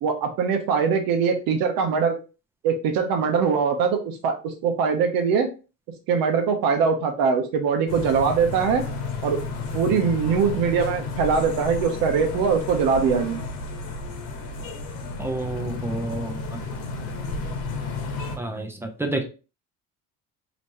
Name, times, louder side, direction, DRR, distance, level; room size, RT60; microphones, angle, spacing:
voice 1, 0.0-2.1 2.6-5.5 6.1-8.9 9.2-9.4 9.7-13.4, right 6 dB, 75° right, 5 dB, 1.0 m, -22 dB
sound 1, 7.9-18.4, left 3 dB, 90° left, 1.1 m, -32 dB
voice 2, 15.2-16.6 18.4-19.2, right 2 dB, 5° right, 4 dB, 0.6 m, -29 dB
3.3 x 3.1 x 2.6 m, 0.33 s
cardioid pair, 120°, 34 cm